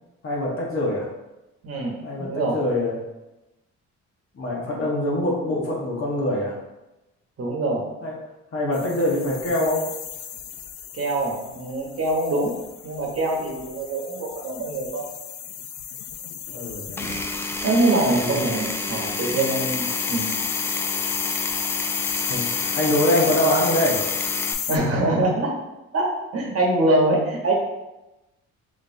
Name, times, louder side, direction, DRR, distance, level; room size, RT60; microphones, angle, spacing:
voice 1, 0.2-1.1 2.0-2.9 4.3-6.5 8.0-8.1 8.5-9.8 16.5-17.1 18.1-18.4 22.3-24.0, left 1 dB, 45° left, -3 dB, 1.2 m, -24 dB
voice 2, 1.6-2.6 7.4-7.8 10.9-12.5 12.8-15.0 17.0-17.2 17.6-20.3 24.7-25.5 25.9-27.5, right 2 dB, 50° right, -1 dB, 1.0 m, -24 dB
sound 1, 8.7-24.8, left 9 dB, 70° left, 0.4 m, -32 dB
Power tool, 17.0-24.5, left 1 dB, 10° left, 0.3 m, -31 dB
4.0 x 3.1 x 2.6 m, 0.99 s
cardioid pair, 90°, 30 cm